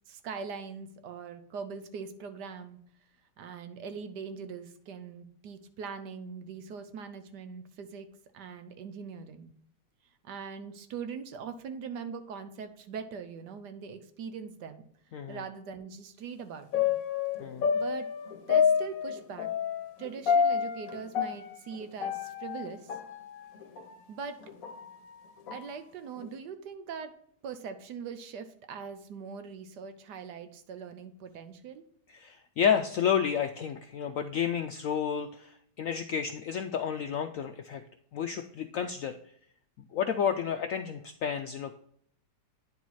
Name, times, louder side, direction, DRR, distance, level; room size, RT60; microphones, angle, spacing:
voice 1, 0.1-2.8 3.4-8.1 8.3-9.5 10.2-14.8 15.3-17.0 17.7-18.1 18.5-19.5 20.0-22.9 24.1-24.4 25.5-27.1 27.4-31.8, right 6 dB, 75° right, 9 dB, 1.4 m, -41 dB
sound 1, 16.7-24.0 24.4-25.8 26.2-26.3, left 7 dB, 55° left, 1.3 m, -29 dB
voice 2, 32.1-37.8 38.1-39.2 39.9-41.9, left 8 dB, 75° left, 7 dB, 0.7 m, -31 dB
9.6 x 4.6 x 4.1 m, 0.67 s
omnidirectional pair, 1.9 m